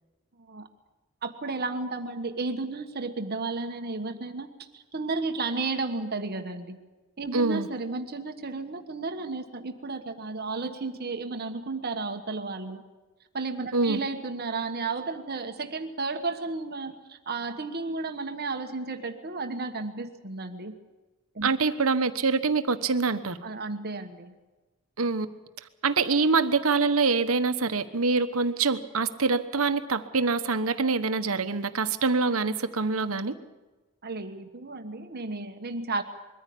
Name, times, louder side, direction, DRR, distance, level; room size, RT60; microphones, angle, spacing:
voice 1, 1.2-6.8 7.2-12.8 13.3-20.8 21.3-21.5 23.4-24.3 34.0-36.0, right 3 dB, 50° right, 6 dB, 1.3 m, -33 dB
voice 2, 7.3-7.7 13.7-14.0 21.4-23.4 25.0-25.3 25.8-33.3, right 4 dB, 70° right, 10 dB, 1.2 m, -25 dB
22.0 x 14.5 x 8.5 m, 1.2 s
head